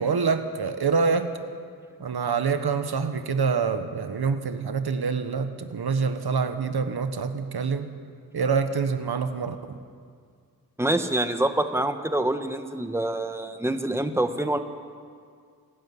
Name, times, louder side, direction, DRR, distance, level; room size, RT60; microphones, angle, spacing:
voice 1, 0.0-1.4 2.0-7.9 8.3-9.8, right 5 dB, 90° right, 9 dB, 1.4 m, -26 dB
voice 2, 10.8-14.6, right 1 dB, 5° right, 7 dB, 1.4 m, -26 dB
27.0 x 13.0 x 9.9 m, 2.1 s
wide cardioid pair, 85°, 37 cm